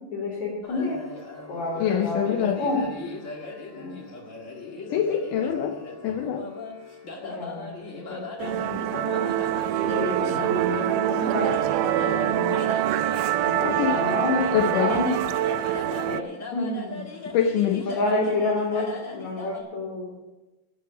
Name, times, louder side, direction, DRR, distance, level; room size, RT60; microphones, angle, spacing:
voice 1, 0.1-1.0 1.5-2.8 3.7-4.0 7.2-9.4 9.8-12.7 13.4-15.1 16.1-16.2 16.5-17.0 17.8-20.1, left 2 dB, 55° left, -4 dB, 3.9 m, -29 dB
sound 1, 0.6-19.6, left 3 dB, 40° left, 1.1 m, -38 dB
voice 2, 1.8-2.6 4.9-6.5 13.6-14.0 14.3-15.0 17.3-17.9, left 9 dB, 75° left, 6 dB, 2.1 m, -25 dB
Musical instrument, 8.4-16.2, right 13 dB, 80° right, 2.0 m, -25 dB
13.0 x 9.4 x 5.7 m, 1.1 s
omnidirectional pair, 4.1 m